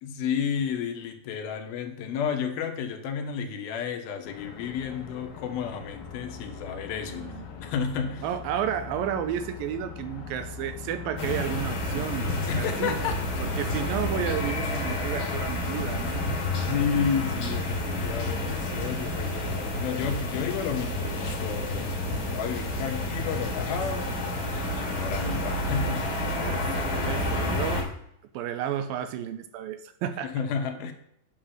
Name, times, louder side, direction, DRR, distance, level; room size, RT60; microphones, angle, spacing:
voice 1, 0.0-7.3 7.6-8.3 12.5-13.2 16.6-22.0 22.3-24.1 24.5-26.1 30.2-30.9, left 7 dB, 80° left, 5 dB, 2.9 m, -31 dB
sound 1, 4.2-14.5, left 5 dB, 65° left, 2.4 m, -42 dB
voice 2, 7.1-7.5 8.2-12.3 12.5-13.0 13.4-16.8 26.4-27.9 28.3-30.3, right 10 dB, 80° right, 9 dB, 2.3 m, -32 dB
sound 2, 11.2-27.8, left 1 dB, 40° left, 3.4 m, -29 dB
8.8 x 5.8 x 6.4 m, 0.72 s
omnidirectional pair, 4.3 m